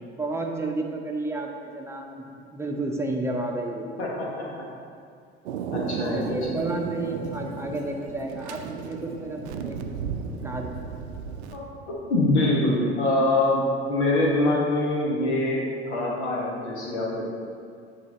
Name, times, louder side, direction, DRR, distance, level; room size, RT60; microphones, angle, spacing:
voice 1, 0.2-3.9 6.1-9.8 10.4-10.7, right 2 dB, 10° right, 1 dB, 0.7 m, -31 dB
voice 2, 4.0-4.4 5.7-6.4 11.5-13.6 13.9-17.2, left 2 dB, 75° left, -3 dB, 1.3 m, -24 dB
Thunder, 5.4-11.6, right 6 dB, 70° right, 0.5 m, -34 dB
8.7 x 3.4 x 4.2 m, 2.3 s
figure-of-eight pair, 70°, 34 cm